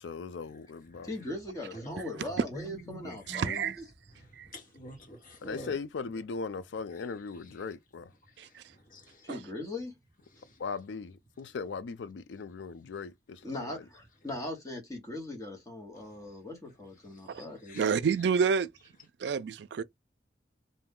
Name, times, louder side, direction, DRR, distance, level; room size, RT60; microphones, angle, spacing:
voice 1, 0.0-1.1 5.4-8.1 10.6-13.6, left 5 dB, 80° left, 0.4 m, -38 dB
voice 2, 1.0-3.8 9.2-10.0 13.4-18.1, left 1 dB, 20° left, 1.0 m, -40 dB
voice 3, 1.7-3.7 4.1-5.8 6.1-6.2 6.9-7.7 8.3-9.3 10.3-10.6 13.4-13.5 15.9-16.1 17.1-17.3 17.6-17.9, equal, 50° left, 1.3 m, -47 dB
voice 4, 3.3-3.8 4.4-4.5 8.4-8.6 9.3-9.4 17.3-17.4 17.7-18.7 19.2-19.8, right 6 dB, 70° right, 0.3 m, -29 dB
2.7 x 2.3 x 3.6 m
head